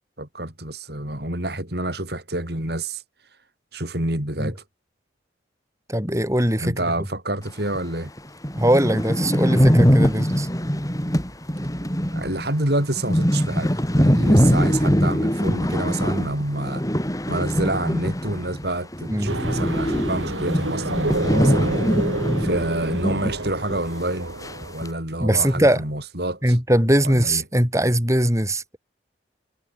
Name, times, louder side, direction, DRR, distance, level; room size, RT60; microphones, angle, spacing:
voice 1, 0.2-3.0 3.7-4.6 6.6-8.1 12.1-16.8 17.3-21.8 22.4-24.3 24.7-26.6 27.0-27.4, right 1 dB, 55° right, 5.8 m, -28 dB
voice 2, 5.9-6.8 8.5-10.5 19.1-19.3 25.2-25.8 26.4-28.8, right 1 dB, 15° right, 6.9 m, -20 dB
sound 1, 7.7-7.8 8.2-8.3 8.4-18.7 18.9-23.4 23.7-23.8 24.4-24.9, equal, 20° left, 5.4 m, -22 dB
sound 2, 19.2-24.7, right 2 dB, 85° right, 4.5 m, -29 dB
head